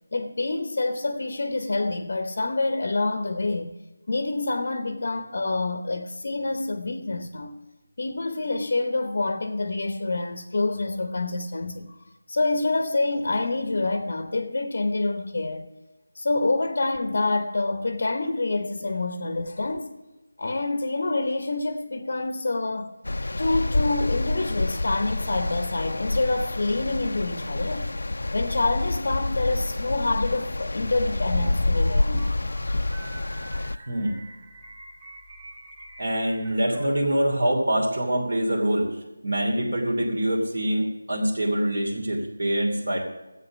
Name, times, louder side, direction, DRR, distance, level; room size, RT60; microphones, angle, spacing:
voice 1, 0.1-3.8 4.1-7.5 8.0-11.9 12.3-15.7 16.2-19.9 20.4-22.9 23.4-27.9 28.3-32.2, left 2 dB, 40° left, 0.8 m, -27 dB
sound 1, 23.0-33.8, left 2 dB, 65° left, 0.5 m, -27 dB
sound 2, 30.8-37.5, right 2 dB, 30° right, 2.0 m, -46 dB
voice 2, 36.0-39.0 39.2-43.0, right 1 dB, 60° right, 2.7 m, -25 dB
13.5 x 8.2 x 6.1 m
figure-of-eight pair, 175°, 0 cm